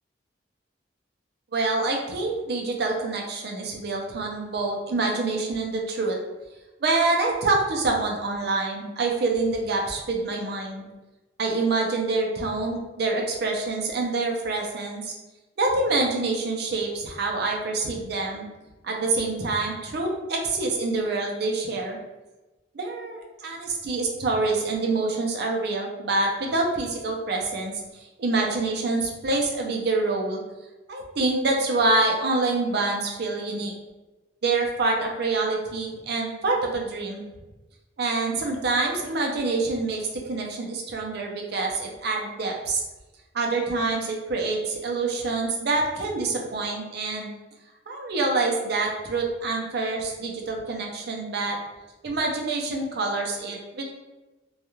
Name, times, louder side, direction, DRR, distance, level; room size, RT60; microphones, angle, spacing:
voice 1, 1.5-6.2 6.8-10.9 11.4-15.1 15.6-18.5 18.8-22.0 22.7-30.4 30.9-33.7 34.4-37.2 38.0-42.8 43.3-47.3 47.9-51.6 52.0-53.8, right 3 dB, 65° right, 0 dB, 0.5 m, -26 dB
2.3 x 2.3 x 3.0 m, 1.1 s
head